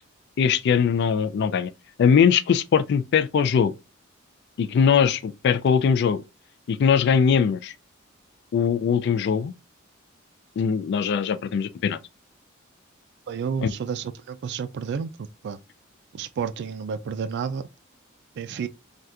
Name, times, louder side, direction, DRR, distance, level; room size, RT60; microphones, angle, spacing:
voice 1, 0.4-1.7 2.0-3.7 4.6-6.2 6.7-7.7 8.5-9.5 10.6-12.0 13.6-13.7, left 7 dB, 55° left, 0.3 m, -21 dB
voice 2, 13.3-15.1 15.4-15.6 16.1-17.7 18.4-18.7, right 6 dB, 55° right, 0.3 m, -30 dB
3.5 x 2.3 x 2.7 m
head